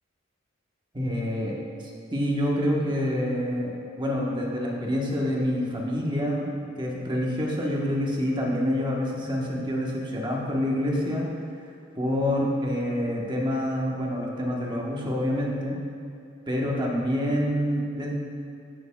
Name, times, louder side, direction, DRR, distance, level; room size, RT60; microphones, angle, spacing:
voice 1, 0.9-1.6 2.1-6.5 6.8-11.3 12.0-15.8 16.5-18.1, equal, 25° right, -3 dB, 1.1 m, -27 dB
14.0 x 6.8 x 2.3 m, 2.4 s
head